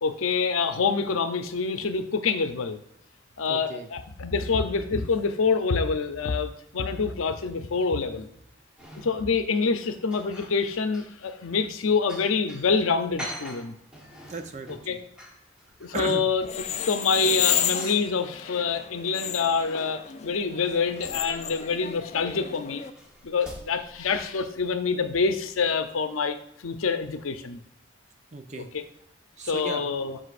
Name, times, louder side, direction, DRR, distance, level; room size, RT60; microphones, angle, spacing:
voice 1, 0.0-2.8 3.4-8.3 9.0-13.7 14.9-15.0 15.8-16.5 16.8-22.8 23.2-26.4 26.6-27.6 28.7-28.8 29.4-30.2, left 5 dB, 85° left, 9 dB, 0.6 m, -26 dB
voice 2, 3.5-3.9 14.2-15.0 15.9-16.2 28.3-28.7 29.4-29.8, right 3 dB, 35° right, 7 dB, 0.6 m, -35 dB
sound 1, 8.8-9.4 9.8-12.7 13.2-18.9 19.3-24.5 25.4-25.8, equal, 5° right, 1.2 m, -46 dB
sound 2, 16.4-22.9, left 10 dB, 30° left, 0.3 m, -32 dB
7.9 x 6.1 x 2.5 m, 0.75 s
head